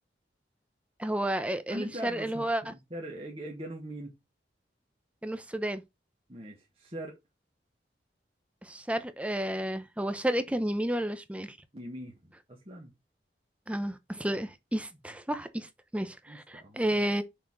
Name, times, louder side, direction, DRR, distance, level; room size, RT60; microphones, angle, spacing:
voice 1, 1.0-2.7 5.2-5.8 8.6-11.6 13.7-17.2, right 1 dB, 5° right, 0.7 m, -31 dB
voice 2, 1.7-4.1 6.3-7.2 11.7-12.9 16.3-17.0, right 1 dB, 30° right, 1.7 m, -42 dB
6.5 x 4.3 x 4.8 m
head